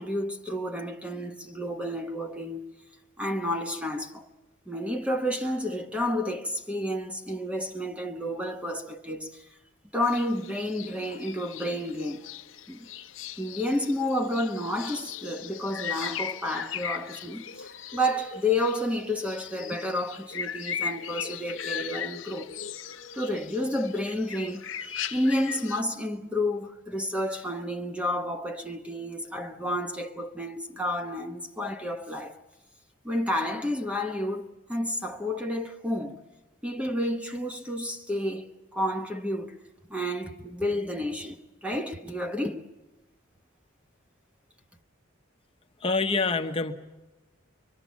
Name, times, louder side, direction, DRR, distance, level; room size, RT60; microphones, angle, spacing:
voice 1, 0.0-2.7 3.2-4.3 4.7-9.4 9.9-12.2 12.7-12.9 13.4-22.5 23.1-32.4 33.0-36.2 36.6-39.6 39.9-42.6, left 1 dB, 5° right, 1.0 m, -30 dB
sound 1, 10.0-25.8, left 8 dB, 70° left, 0.9 m, -38 dB
voice 2, 45.8-46.7, left 3 dB, 30° left, 1.0 m, -26 dB
24.5 x 24.0 x 7.3 m
head